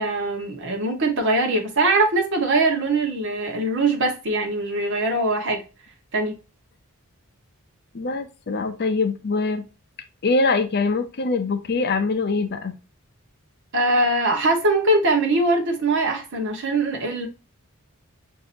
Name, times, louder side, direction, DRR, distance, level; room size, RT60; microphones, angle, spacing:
voice 1, 0.0-5.6 6.1-6.3 13.7-17.3, right 2 dB, 55° right, 1.0 m, -22 dB
voice 2, 7.9-9.6 10.2-12.7, left 3 dB, 50° left, 0.6 m, -23 dB
5.9 x 2.7 x 2.5 m
head